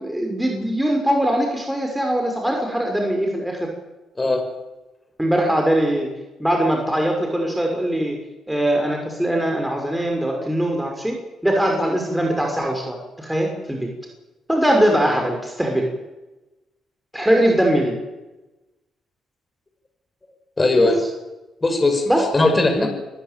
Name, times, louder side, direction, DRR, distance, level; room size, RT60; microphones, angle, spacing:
voice 1, 0.0-3.7 5.2-6.1 6.4-8.2 8.5-11.2 11.4-13.9 14.5-15.9 17.1-18.0 22.1-22.2 22.8-22.9, right 1 dB, 5° right, 1 dB, 6.0 m, -21 dB
voice 2, 20.6-21.0 21.6-22.0 22.3-22.9, left 2 dB, 20° left, 4 dB, 5.9 m, -18 dB
26.0 x 15.0 x 9.3 m, 1.1 s
cardioid pair, 90°, 0 cm